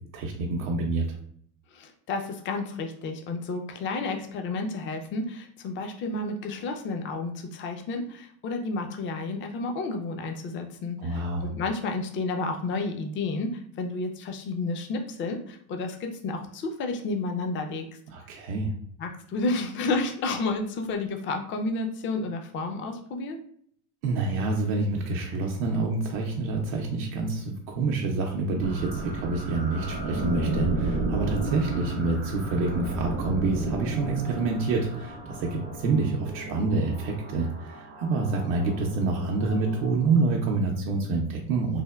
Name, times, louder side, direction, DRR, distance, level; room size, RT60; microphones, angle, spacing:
voice 1, 0.1-1.1 11.0-11.5 18.1-18.7 24.0-41.8, right 3 dB, 70° right, 0 dB, 0.6 m, -27 dB
voice 2, 1.7-17.9 19.0-23.4, left 3 dB, 30° left, 4 dB, 0.4 m, -31 dB
sound 1, 28.6-40.6, right 2 dB, 25° right, 0.5 m, -33 dB
3.3 x 2.1 x 2.2 m, 0.63 s
supercardioid pair, 100°, 42 cm